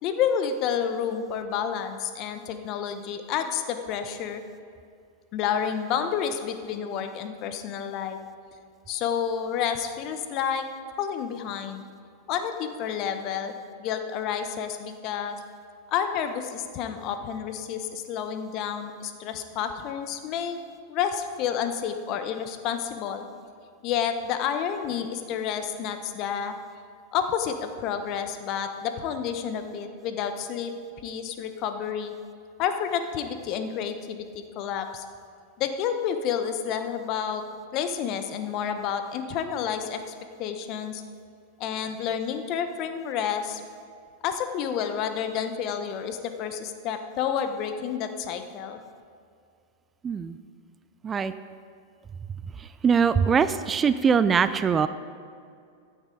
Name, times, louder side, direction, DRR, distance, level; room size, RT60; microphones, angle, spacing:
voice 1, 0.0-4.4 5.3-8.2 8.9-10.7 11.0-11.9 12.3-13.5 13.8-15.4 15.9-20.6 20.9-23.2 23.8-26.5 27.1-30.7 31.0-32.1 32.6-35.0 35.6-37.4 37.7-40.1 40.4-41.0 41.6-43.6 44.2-48.8, left 8 dB, 45° left, 8 dB, 1.0 m, -30 dB
voice 2, 50.0-50.4 51.0-51.3 52.8-54.9, right 6 dB, 25° right, 13 dB, 0.4 m, -22 dB
14.5 x 9.4 x 3.9 m, 2.3 s
hypercardioid pair, 100°, 0 cm